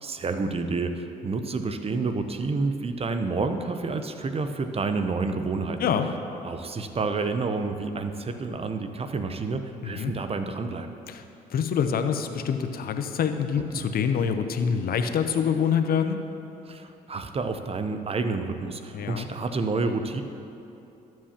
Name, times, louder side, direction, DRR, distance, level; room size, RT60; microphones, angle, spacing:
voice 1, 0.0-5.9 6.4-11.0 13.7-13.8 16.7-20.2, right 3 dB, 35° right, 8 dB, 0.7 m, -29 dB
voice 2, 11.5-16.2 18.9-19.3, left 7 dB, 60° left, 7 dB, 0.7 m, -26 dB
13.0 x 7.5 x 2.9 m, 2.9 s
supercardioid pair, 65°, 17 cm